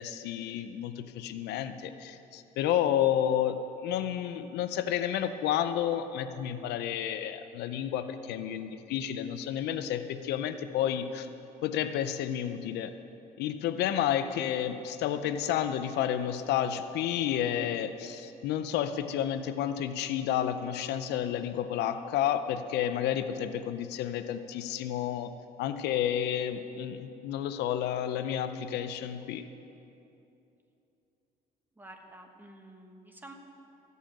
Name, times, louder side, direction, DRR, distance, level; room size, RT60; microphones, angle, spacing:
voice 1, 0.0-11.3 11.6-12.9 13.4-25.3 25.6-29.5, left 10 dB, 80° left, 10 dB, 0.6 m, -31 dB
voice 2, 31.8-33.3, right 1 dB, 10° right, 3 dB, 1.3 m, -50 dB
14.5 x 5.5 x 8.7 m, 2.8 s
cardioid pair, 110°, 17 cm